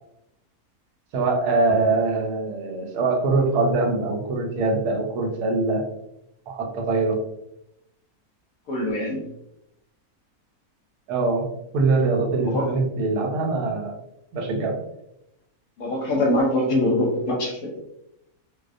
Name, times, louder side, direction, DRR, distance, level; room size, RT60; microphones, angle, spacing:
voice 1, 1.1-5.8 6.5-7.2 11.1-14.0 14.3-14.7, right 3 dB, 85° right, 2 dB, 1.1 m, -23 dB
voice 2, 8.7-9.3 12.4-12.7 15.8-17.8, left 1 dB, 70° left, -1 dB, 1.0 m, -23 dB
2.5 x 2.0 x 2.4 m, 0.82 s
omnidirectional pair, 1.6 m